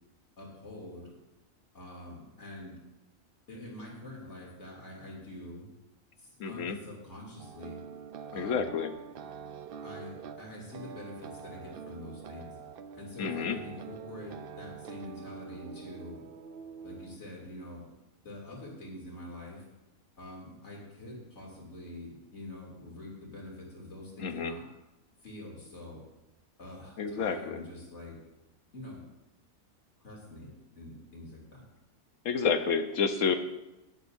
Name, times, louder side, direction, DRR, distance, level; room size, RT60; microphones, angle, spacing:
voice 1, 0.4-1.1 1.7-2.7 3.5-5.7 6.2-7.8 8.3-8.7 9.8-12.5 12.9-16.3 16.8-17.9 18.2-19.6 20.2-24.6 25.2-26.0 26.6-28.2 28.7-29.0 30.0-31.7, left 1 dB, 55° left, -3 dB, 3.2 m, -45 dB
voice 2, 6.4-6.8 8.3-8.9 13.2-13.6 24.2-24.5 27.0-27.6 32.2-33.4, left 6 dB, 70° left, 8 dB, 1.2 m, -29 dB
sound 1, 7.4-17.2, right 7 dB, 65° right, 0.6 m, -45 dB
18.5 x 8.1 x 2.7 m, 0.98 s
omnidirectional pair, 1.4 m